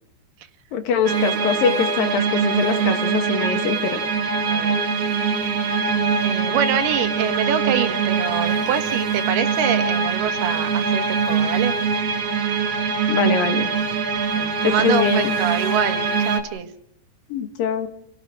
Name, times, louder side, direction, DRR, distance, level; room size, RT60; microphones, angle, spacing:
voice 1, 0.7-4.0 13.1-13.7 14.6-15.3 17.3-17.9, left 7 dB, 65° left, 8 dB, 3.1 m, -23 dB
sound 1, 1.0-16.4, right 5 dB, 55° right, 2.8 m, -23 dB
voice 2, 4.5-4.8 5.8-11.8 14.3-16.7, right 9 dB, 75° right, 8 dB, 3.4 m, -25 dB
29.5 x 17.5 x 6.0 m, 0.71 s
omnidirectional pair, 4.6 m